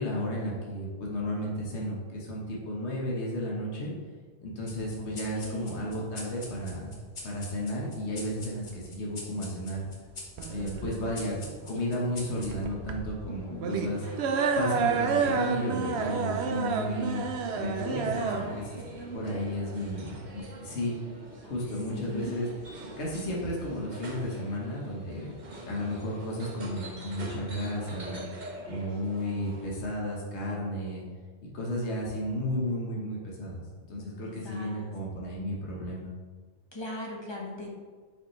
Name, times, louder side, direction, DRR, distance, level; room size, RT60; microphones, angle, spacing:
voice 1, 0.0-3.9 4.4-9.9 10.5-11.4 11.7-17.3 17.5-18.8 19.1-20.9 21.4-22.5 23.0-25.3 25.6-28.2 28.7-31.0 31.5-33.6 33.9-36.1, left 1 dB, 75° left, -3 dB, 1.5 m, -33 dB
sound 1, 4.7-13.5, left 2 dB, 45° left, 1.2 m, -46 dB
voice 2, 5.0-5.9 13.3-13.7 17.9-18.7 18.9-19.4 21.9-22.5 33.9-34.9 36.7-37.7, left 1 dB, 25° left, -2 dB, 1.1 m, -40 dB
sound 2, 10.4-20.4, right 5 dB, 75° right, 0.9 m, -30 dB
sound 3, 13.7-29.7, right 2 dB, 45° right, 1.0 m, -45 dB
7.1 x 5.3 x 3.1 m, 1.5 s
omnidirectional pair, 1.1 m